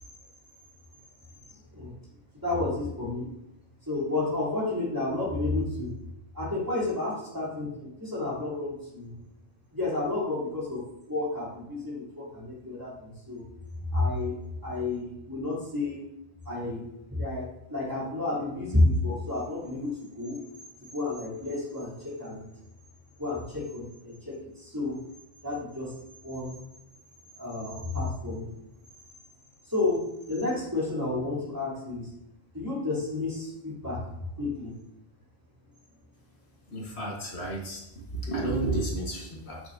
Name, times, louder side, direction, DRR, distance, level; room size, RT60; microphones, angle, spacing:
voice 1, 1.5-1.9 2.4-3.3 3.9-5.9 6.3-9.1 9.7-13.4 13.9-14.4 14.6-16.1 16.4-16.8 17.1-20.5 20.9-22.4 23.2-25.0 25.4-25.9 26.2-26.6 27.3-28.5 29.6-30.0 30.3-32.1 32.5-34.8, left 2 dB, 20° right, -7 dB, 3.2 m, -31 dB
voice 2, 36.7-37.8 38.1-39.6, right 2 dB, 70° left, -2 dB, 1.7 m, -31 dB
8.3 x 7.8 x 2.7 m, 0.84 s
omnidirectional pair, 1.1 m